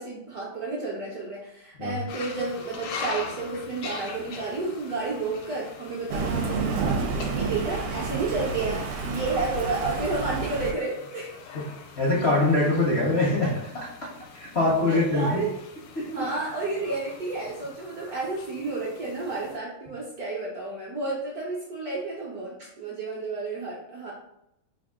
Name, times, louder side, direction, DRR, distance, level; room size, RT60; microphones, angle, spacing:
voice 1, 0.0-11.4 14.8-15.5 16.1-24.1, right 3 dB, 65° right, -5 dB, 1.0 m, -31 dB
sound 1, 2.1-19.6, left 5 dB, 80° left, 1.5 m, -42 dB
Thunder, 6.1-10.7, right 4 dB, 90° right, 1.5 m, -29 dB
voice 2, 12.0-13.9 14.3-15.3 16.0-16.1, left 2 dB, 65° left, -5 dB, 0.6 m, -23 dB
3.5 x 2.5 x 3.5 m, 0.81 s
omnidirectional pair, 2.3 m